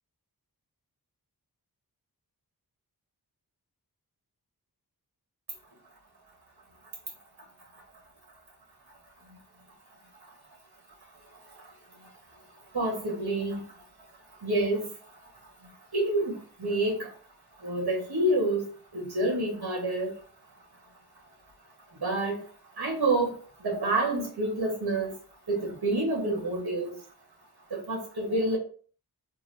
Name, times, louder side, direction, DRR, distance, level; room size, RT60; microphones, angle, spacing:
voice 1, 11.3-11.7 12.7-13.8 14.3-15.2 15.6-17.1 17.6-20.1 22.0-22.4 22.8-25.2 25.5-27.0 27.7-28.6, right 2 dB, 75° right, -3 dB, 1.5 m, -29 dB
3.6 x 2.5 x 3.2 m, 0.42 s
wide cardioid pair, 60°, 39 cm